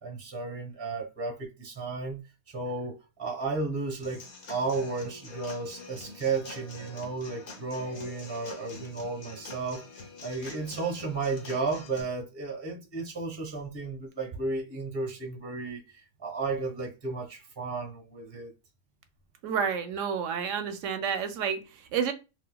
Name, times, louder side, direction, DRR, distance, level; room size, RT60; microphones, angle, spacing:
voice 1, 0.0-2.2 2.5-18.5, right 3 dB, 25° right, 0.7 m, -33 dB
Human voice / Acoustic guitar / Drum, 4.0-12.0, left 3 dB, 55° left, 1.1 m, -46 dB
voice 2, 19.4-22.1, right 7 dB, 70° right, 0.9 m, -30 dB
4.2 x 2.3 x 2.2 m
omnidirectional pair, 1.5 m